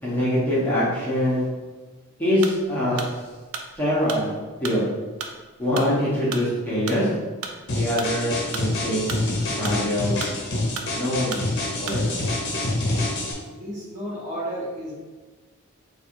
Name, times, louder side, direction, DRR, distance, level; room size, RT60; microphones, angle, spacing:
voice 1, 0.0-1.5 2.2-3.0 3.8-4.3 4.6-4.9 5.6-7.1 7.7-9.2 9.6-10.2 10.9-11.4 11.8-12.2, equal, 10° left, -9 dB, 1.0 m, -24 dB
sound 1, 2.4-12.2, right 5 dB, 75° right, 0.4 m, -36 dB
sound 2, 7.7-13.3, left 2 dB, 55° left, 0.8 m, -26 dB
voice 2, 13.5-14.9, equal, 35° right, -7 dB, 1.2 m, -32 dB
3.3 x 2.5 x 4.5 m, 1.3 s
head